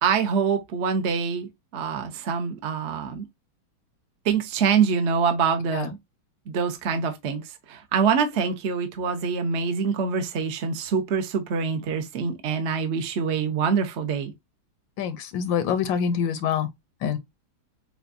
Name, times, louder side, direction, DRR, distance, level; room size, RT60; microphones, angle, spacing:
voice 1, 0.0-3.3 4.2-6.0 6.5-14.3, right 6 dB, 55° right, 0.7 m, -25 dB
voice 2, 15.0-16.7 17.0-17.2, left 7 dB, 80° left, 1.4 m, -25 dB
6.8 x 2.3 x 2.5 m
omnidirectional pair, 2.1 m